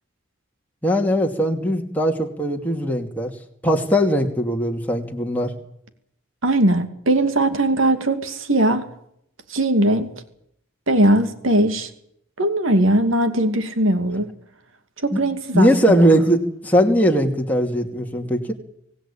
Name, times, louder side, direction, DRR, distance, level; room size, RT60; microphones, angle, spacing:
voice 1, 0.8-3.3 3.6-5.5 15.1-15.2 15.5-18.5, equal, 10° left, 2.6 m, -20 dB
voice 2, 6.4-8.9 9.5-10.1 10.9-11.9 12.4-14.3 15.0-16.1, right 1 dB, 90° right, 2.6 m, -19 dB
25.5 x 17.5 x 8.8 m
head